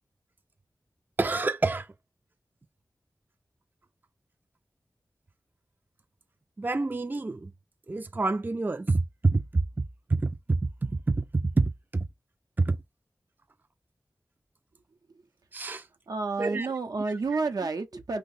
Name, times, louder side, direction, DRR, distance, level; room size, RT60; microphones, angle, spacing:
voice 1, 1.2-1.9 6.6-7.5 7.9-12.1 12.6-12.8 15.5-15.9 16.4-16.7 17.3-17.4, right 3 dB, 30° right, 0.4 m, -27 dB
voice 2, 16.1-18.2, right 3 dB, 80° right, 0.7 m, -30 dB
2.8 x 2.2 x 4.1 m
wide cardioid pair, 55°, 6 cm